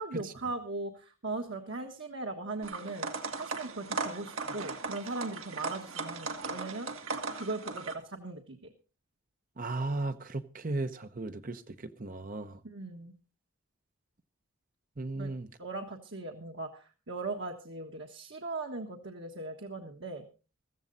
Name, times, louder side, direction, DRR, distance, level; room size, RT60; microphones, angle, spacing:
voice 1, 0.0-3.1 3.4-6.9 7.3-8.6 12.6-13.1 15.1-15.3 15.6-20.2, right 3 dB, 55° right, 1.5 m, -39 dB
sound 1, 2.6-7.9, right 3 dB, 75° right, 1.9 m, -37 dB
voice 2, 9.6-12.6 15.0-15.5, right 2 dB, 40° right, 0.8 m, -36 dB
14.5 x 14.5 x 4.0 m
head